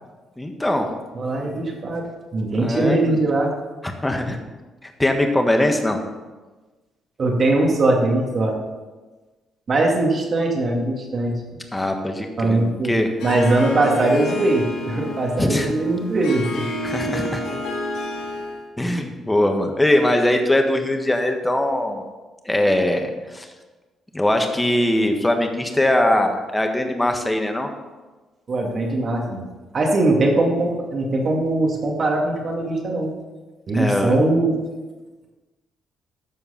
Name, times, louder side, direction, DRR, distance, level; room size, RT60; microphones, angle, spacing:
voice 1, 0.4-0.9 2.6-3.2 3.8-4.4 4.8-6.0 11.7-13.1 15.4-15.7 16.8-17.4 18.8-22.0 22.4-23.5 24.1-27.7 33.7-34.2, left 1 dB, 10° left, 4 dB, 1.4 m, -21 dB
voice 2, 1.1-2.0 2.3-3.5 7.2-8.5 9.7-11.3 12.4-12.9 13.2-16.6 28.5-29.5 29.7-33.1 33.7-34.5, right 2 dB, 45° right, 0 dB, 2.3 m, -21 dB
Harp, 13.2-18.7, left 1 dB, 80° left, 1.9 m, -29 dB
13.0 x 4.6 x 5.7 m, 1.2 s
cardioid pair, 90°, 0 cm